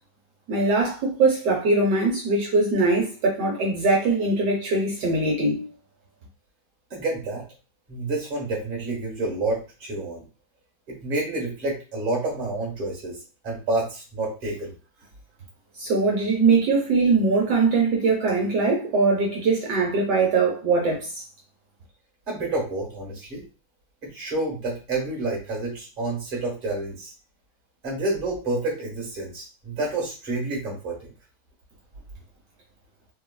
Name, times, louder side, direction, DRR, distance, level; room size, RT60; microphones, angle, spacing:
voice 1, 0.5-5.7 15.8-21.2, right 3 dB, 70° right, 1.3 m, -21 dB
voice 2, 6.9-7.4 7.9-10.2 10.9-13.2 13.4-14.7 22.3-23.4 24.0-27.1 27.8-31.1, right 2 dB, 30° right, 1.3 m, -29 dB
3.6 x 2.3 x 2.2 m
omnidirectional pair, 2.0 m